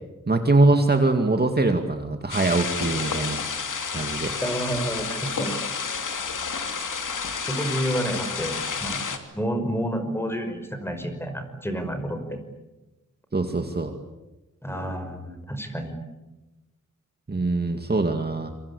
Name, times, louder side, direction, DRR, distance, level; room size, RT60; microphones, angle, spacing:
voice 1, 0.3-3.4 3.9-4.3 13.3-13.9 17.3-18.5, right 2 dB, 30° right, 5 dB, 2.3 m, -22 dB
sound 1, 2.3-9.2, left 5 dB, 75° left, 3.0 m, -30 dB
voice 2, 4.4-5.6 7.5-9.1 9.3-12.4 14.6-16.0, equal, 5° left, 7 dB, 5.5 m, -29 dB
27.5 x 25.0 x 8.5 m, 1.1 s
wide cardioid pair, 110°, 32 cm